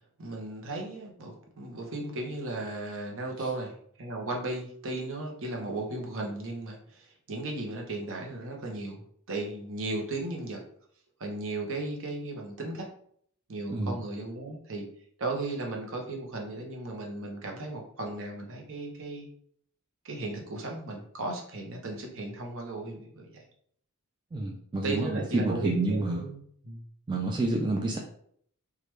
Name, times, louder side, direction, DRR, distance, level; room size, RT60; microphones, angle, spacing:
voice 1, 0.2-10.6 11.2-12.9 13.5-14.9 15.2-19.3 20.0-23.4 24.8-26.9, right 2 dB, 65° right, 1 dB, 0.8 m, -36 dB
voice 2, 24.3-26.2 27.1-28.0, right 2 dB, 20° right, 1 dB, 0.3 m, -29 dB
3.1 x 2.4 x 3.1 m, 0.64 s
head